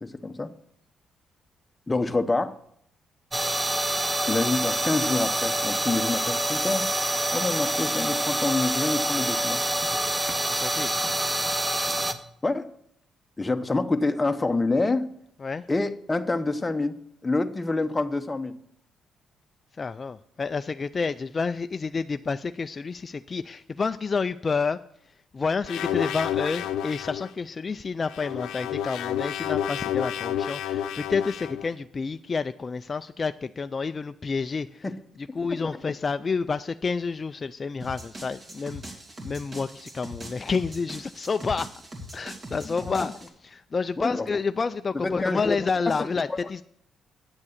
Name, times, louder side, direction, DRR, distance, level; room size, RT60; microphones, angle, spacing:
voice 1, 0.0-0.5 1.9-2.5 4.3-6.9 7.3-9.6 12.4-12.7 13.4-15.1 15.7-18.5 34.8-34.9 35.5-35.6 42.6-42.9 44.0-44.3 44.9-45.6 46.0-46.4, left 3 dB, 20° left, 8 dB, 0.8 m, -27 dB
sound 1, 3.3-12.1, right 1 dB, 15° right, 0.9 m, -26 dB
voice 2, 10.5-10.9 15.4-15.6 19.8-24.8 25.3-34.9 35.3-41.7 42.1-46.6, left 4 dB, 35° left, 9 dB, 0.4 m, -29 dB
sound 2, 25.7-27.3 28.0-31.7, left 10 dB, 90° left, 0.6 m, -30 dB
sound 3, 37.8-43.3, equal, 40° right, 2.5 m, -41 dB
9.6 x 7.3 x 6.5 m, 0.69 s
cardioid pair, 90°, 0 cm